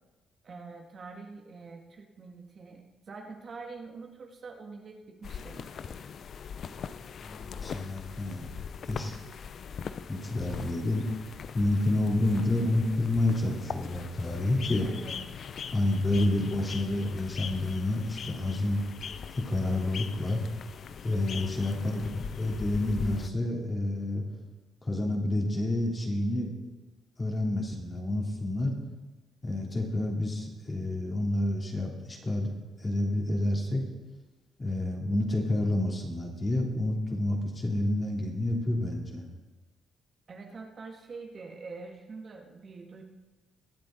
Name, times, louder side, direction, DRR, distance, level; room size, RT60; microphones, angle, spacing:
voice 1, 0.4-6.1 14.8-15.2 21.5-22.1 40.3-43.0, right 4 dB, 45° right, 1 dB, 1.9 m, -45 dB
sound 1, 5.2-23.3, left 7 dB, 55° left, 0.5 m, -41 dB
voice 2, 6.9-8.5 8.9-9.2 10.1-11.1 11.5-14.9 15.7-18.8 19.4-20.4 21.0-24.2 24.8-26.5 27.2-28.7 29.4-32.5 32.8-33.8 34.6-39.2, left 1 dB, 25° left, -1 dB, 3.1 m, -29 dB
23.0 x 7.7 x 3.9 m, 1.2 s
cardioid pair, 90°, 0 cm